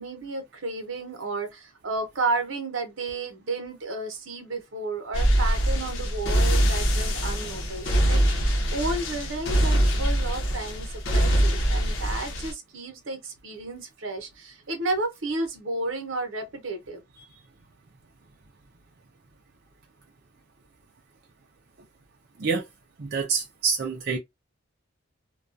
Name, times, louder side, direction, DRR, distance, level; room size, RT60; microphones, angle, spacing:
voice 1, 0.0-17.0, right 2 dB, 75° right, 0.8 m, -32 dB
sound 1, 5.1-12.5, equal, 70° left, 0.7 m, -23 dB
voice 2, 23.0-24.2, right 5 dB, 55° right, 0.5 m, -27 dB
2.3 x 2.3 x 2.5 m
head